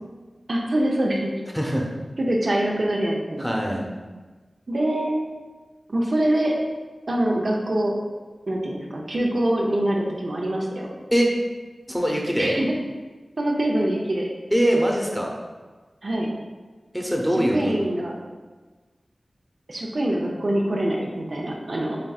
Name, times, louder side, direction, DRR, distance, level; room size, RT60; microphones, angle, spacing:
voice 1, 0.5-1.3 2.2-3.5 4.7-5.1 5.9-6.6 7.1-8.0 8.5-10.9 12.4-12.7 13.4-14.3 16.0-16.3 17.4-18.2 19.7-22.0, right 1 dB, 60° right, -1 dB, 0.6 m, -24 dB
voice 2, 1.5-1.9 3.4-3.8 11.1-11.3 11.9-12.6 14.5-15.3 16.9-17.9, equal, ahead, -1 dB, 0.8 m, -22 dB
7.3 x 2.6 x 2.3 m, 1.3 s
wide cardioid pair, 55°, 0 cm